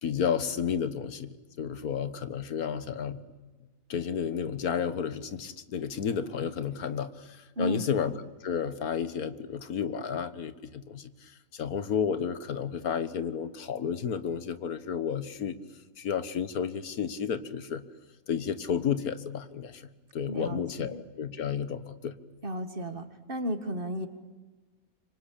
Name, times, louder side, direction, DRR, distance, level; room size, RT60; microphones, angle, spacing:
voice 1, 0.0-3.2 3.9-8.1 8.4-15.6 16.0-17.8 18.3-22.2, left 7 dB, 90° left, 13 dB, 1.8 m, -32 dB
voice 2, 7.6-7.9 20.3-21.0 22.4-24.1, equal, 40° right, 9 dB, 2.0 m, -34 dB
26.0 x 25.0 x 8.6 m, 1.3 s
omnidirectional pair, 1.5 m